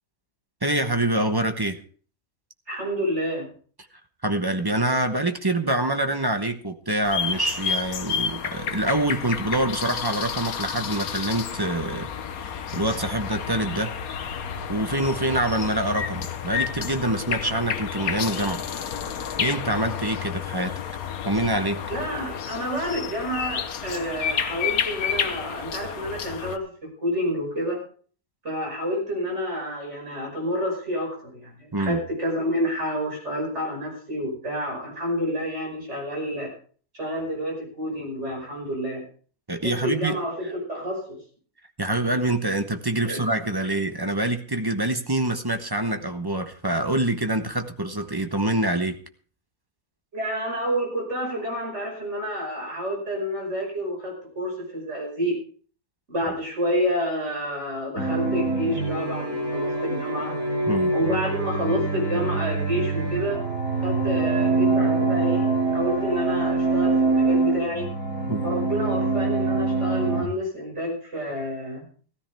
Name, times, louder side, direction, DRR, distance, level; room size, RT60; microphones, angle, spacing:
voice 1, 0.6-1.8 4.2-12.1 12.4-13.9 14.7-18.6 19.4-20.8 21.2-21.8 31.7-32.0 39.5-40.2 41.8-49.0 60.7-60.9 68.3-68.5, right 1 dB, 20° right, 7 dB, 0.9 m, -25 dB
voice 2, 2.7-3.5 21.9-27.8 28.4-36.5 36.9-39.0 39.6-41.2 43.0-43.2 50.1-55.4 56.1-60.3 60.9-63.4 63.8-65.5 65.7-67.9 68.4-71.8, equal, 50° right, 0 dB, 5.8 m, -29 dB
sound 1, 7.0-26.6, left 7 dB, 85° left, 1.4 m, -30 dB
sound 2, 58.0-70.2, right 3 dB, 75° right, 6.1 m, -24 dB
16.0 x 13.5 x 3.5 m, 0.43 s
omnidirectional pair, 1.5 m